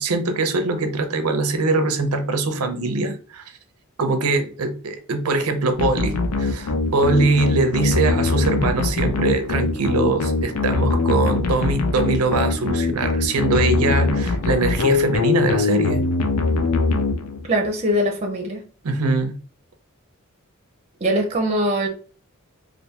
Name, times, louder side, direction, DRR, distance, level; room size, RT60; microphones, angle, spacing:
voice 1, 0.0-3.4 4.0-16.0 18.8-19.4, right 3 dB, 80° right, 0.6 m, -22 dB
sound 1, 5.8-17.6, left 3 dB, 85° left, 0.5 m, -22 dB
voice 2, 17.5-18.6 21.0-21.9, equal, 30° right, 0.6 m, -22 dB
3.4 x 2.6 x 2.8 m
head